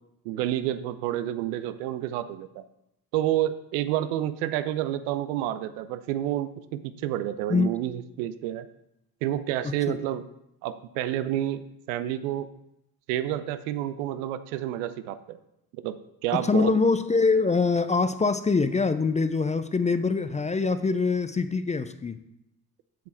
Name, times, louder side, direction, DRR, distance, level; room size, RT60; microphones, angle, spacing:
voice 1, 0.2-2.6 3.1-8.7 9.2-10.3 10.6-12.5 13.1-15.4 15.7-16.0 16.2-16.8, right 12 dB, 75° right, 12 dB, 0.7 m, -29 dB
voice 2, 9.6-10.0 16.4-22.2, left 4 dB, 15° left, 12 dB, 0.4 m, -24 dB
7.6 x 7.4 x 4.4 m, 0.82 s
hypercardioid pair, 50°, 46 cm